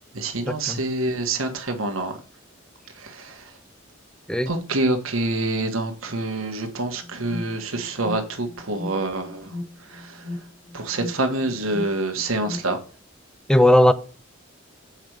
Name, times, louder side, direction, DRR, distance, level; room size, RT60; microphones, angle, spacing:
voice 1, 0.1-2.2 2.9-3.5 4.4-9.5 9.8-10.3 10.7-12.8, right 2 dB, 85° right, 1.4 m, -27 dB
Alarm, 7.0-12.9, left 2 dB, 75° left, 3.0 m, -38 dB
voice 2, 13.5-13.9, left 1 dB, 5° left, 0.5 m, -16 dB
7.2 x 5.1 x 4.6 m
head